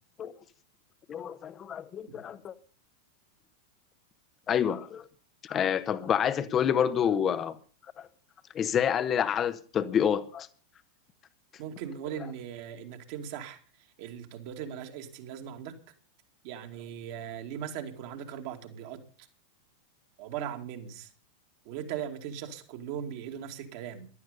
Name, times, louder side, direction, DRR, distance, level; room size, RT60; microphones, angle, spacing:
voice 1, 1.1-2.5 4.5-5.0 5.4-7.6 8.0-8.1 8.5-10.5, left 8 dB, 25° left, 1.1 m, -28 dB
voice 2, 11.6-13.6 14.0-15.8 16.4-19.0 20.2-21.1 21.7-24.1, right 9 dB, 45° right, 2.4 m, -39 dB
15.5 x 12.0 x 5.4 m
figure-of-eight pair, 90°, 0 cm